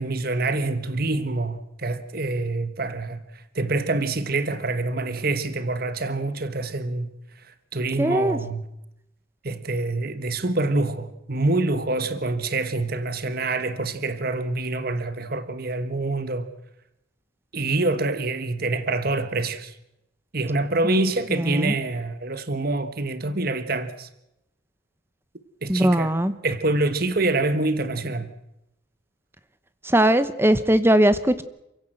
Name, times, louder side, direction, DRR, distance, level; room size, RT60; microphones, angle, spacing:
voice 1, 0.0-7.1 7.4-8.6 9.4-16.5 17.5-19.7 20.3-24.1 25.6-26.1 26.4-28.3, right 2 dB, 50° right, 1.4 m, -26 dB
voice 2, 8.0-8.4 20.8-21.0 21.3-21.7 25.7-26.3 29.8-31.4, right 1 dB, 10° right, 1.0 m, -20 dB
28.5 x 16.0 x 7.8 m
head